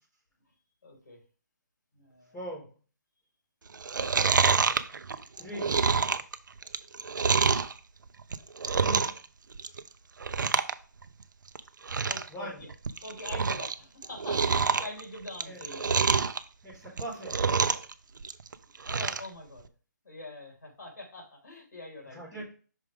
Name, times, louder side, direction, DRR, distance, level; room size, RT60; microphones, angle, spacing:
voice 1, 0.8-1.2 1.9-2.4 12.1-12.7 13.0-15.9 18.8-19.7 20.0-22.4, left 2 dB, 60° left, -1 dB, 3.5 m, -44 dB
voice 2, 2.3-2.7 5.4-5.8 8.8-9.1 12.3-12.6 15.4-15.6 16.6-17.4 22.1-22.5, equal, 5° left, -12 dB, 2.2 m, -40 dB
Chewing mastication, 3.7-7.7 8.2-9.2 9.5-9.9 10.2-10.7 11.0-11.1 11.5-11.6 11.8-12.3 12.7-13.7 14.0-16.4 16.9-17.9 18.2-19.3 19.6-19.7, right 5 dB, 80° right, 0.5 m, -27 dB
6.0 x 4.7 x 3.6 m, 0.38 s
hypercardioid pair, 180°, 10 cm